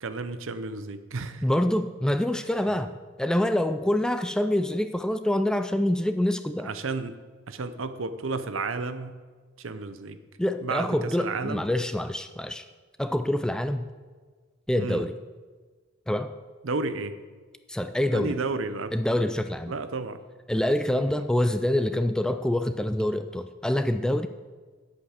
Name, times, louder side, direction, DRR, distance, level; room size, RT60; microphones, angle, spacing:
voice 1, 0.0-1.4 6.6-7.2 7.5-9.1 9.6-10.2 10.6-11.7 14.8-15.1 16.6-17.2 18.1-18.9 19.7-20.2 20.9-21.3, right 3 dB, 75° right, 11 dB, 0.8 m, -32 dB
voice 2, 1.4-2.9 3.2-6.7 10.4-12.6 13.0-13.9 14.7-15.1 16.1-16.3 17.7-18.4 18.9-19.7 20.5-24.3, left 1 dB, 5° left, 9 dB, 0.3 m, -26 dB
10.5 x 8.5 x 6.5 m, 1.4 s
head